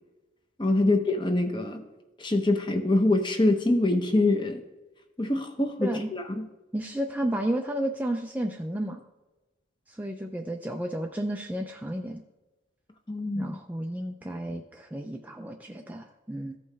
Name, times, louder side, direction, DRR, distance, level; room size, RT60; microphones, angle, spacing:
voice 1, 0.6-1.8 2.2-4.6 5.2-6.5 13.1-13.6, left 2 dB, 25° left, 6 dB, 0.8 m, -25 dB
voice 2, 5.8-6.1 6.7-9.0 9.9-12.2 13.3-16.6, right 1 dB, 10° right, 3 dB, 0.4 m, -32 dB
14.5 x 5.5 x 3.3 m, 1.1 s
head